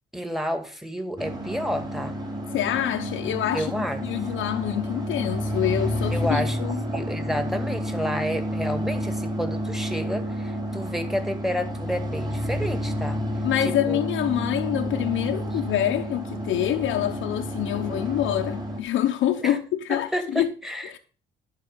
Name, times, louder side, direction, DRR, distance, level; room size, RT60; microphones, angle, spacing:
voice 1, 0.1-2.1 3.5-4.0 6.1-13.2 13.6-14.0 19.4-19.6 19.9-21.0, equal, ahead, 2.0 m, -30 dB
sound 1, 1.2-18.8, equal, 20° right, 3.9 m, -30 dB
voice 2, 2.5-6.8 13.4-20.5 20.9-21.0, left 11 dB, 80° left, 0.9 m, -26 dB
11.5 x 4.6 x 8.1 m
cardioid pair, 90°, 20 cm